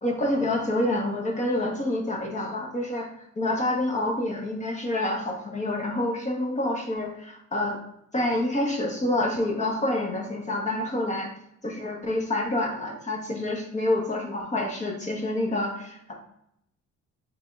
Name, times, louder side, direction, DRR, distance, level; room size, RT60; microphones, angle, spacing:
voice 1, 0.0-3.1 3.4-7.8 8.1-11.3 11.6-16.1, left 1 dB, 25° left, 1 dB, 1.1 m, -27 dB
4.6 x 3.4 x 2.5 m, 0.75 s
cardioid pair, 100°, 29 cm